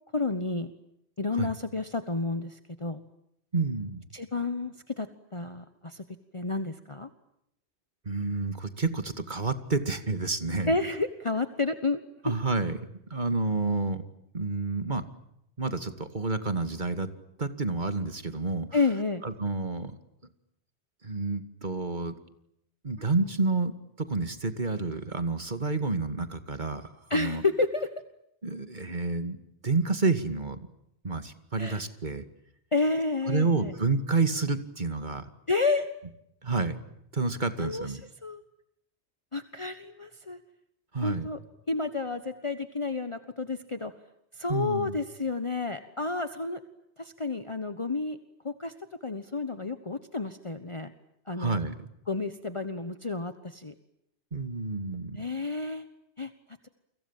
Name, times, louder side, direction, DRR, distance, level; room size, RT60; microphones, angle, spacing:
voice 1, 0.1-0.7 1.2-3.0 4.1-6.0 6.3-7.1 10.7-12.3 18.7-19.2 27.1-27.9 31.6-31.8 32.7-33.7 35.5-35.9 37.6-38.4 39.3-40.4 41.0-41.4 41.7-43.9 44.3-46.6 47.0-48.2 48.4-48.7 49.0-50.9 51.3-51.6 52.1-53.7 55.1-55.8 56.2-56.3, left 3 dB, 30° left, 10 dB, 1.3 m, -30 dB
voice 2, 3.5-4.0 8.1-10.8 12.2-12.7 13.1-14.0 14.3-15.0 15.6-17.1 17.4-18.7 19.2-19.9 21.0-22.1 22.8-23.7 24.0-27.4 28.4-29.4 29.6-30.6 31.0-32.2 33.3-35.3 36.4-36.8 37.1-38.0 40.9-41.3 44.5-45.0 51.4-51.9 54.3-55.3, right 3 dB, 45° right, 10 dB, 2.5 m, -29 dB
30.0 x 25.0 x 7.5 m, 0.78 s
omnidirectional pair, 1.1 m